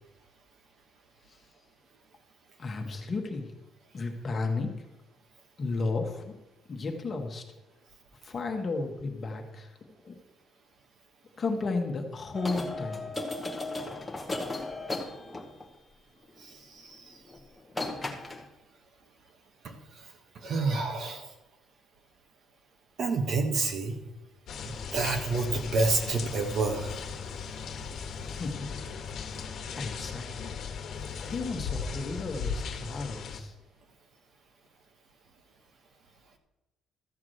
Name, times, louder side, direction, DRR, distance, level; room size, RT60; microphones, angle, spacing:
voice 1, 2.6-3.5 3.9-4.7 5.6-6.3 6.7-7.4 8.2-9.7 10.0-10.1 11.4-13.0 28.2-28.9 29.3-30.5 31.2-33.5, left 3 dB, 30° left, 3 dB, 1.4 m, -33 dB
sound 1, 12.3-15.8 17.3-17.4 17.7-18.5, left 2 dB, 10° left, 1.1 m, -35 dB
voice 2, 16.4-17.0 19.6-19.7 20.4-21.3 23.0-24.0 24.9-26.9, right 3 dB, 45° right, 5 dB, 1.3 m, -28 dB
sound 2, 24.5-33.4, left 5 dB, 55° left, 1.4 m, -37 dB
13.5 x 4.8 x 7.8 m, 1.0 s
cardioid pair, 155°, 0 cm